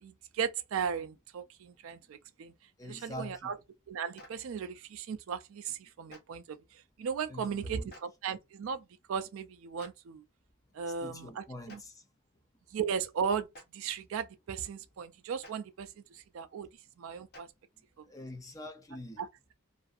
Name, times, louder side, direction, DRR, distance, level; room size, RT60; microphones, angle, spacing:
voice 1, 0.0-2.5 2.8-3.5 3.9-6.6 7.0-10.2 10.7-11.8 12.7-13.5 13.7-16.7 17.0-17.5 19.2-19.3, right 7 dB, 70° right, 0.4 m, -36 dB
voice 2, 2.8-3.5 7.3-7.9 11.0-12.0 18.1-19.2, left 1 dB, 15° left, 0.4 m, -45 dB
Clapping, 4.1-4.3 6.1-6.2 7.9-8.0 9.8-9.9 11.7-11.8 13.5-13.6 15.4-15.5 17.3-17.4, left 1 dB, 45° left, 1.0 m, -50 dB
2.6 x 2.4 x 2.4 m
head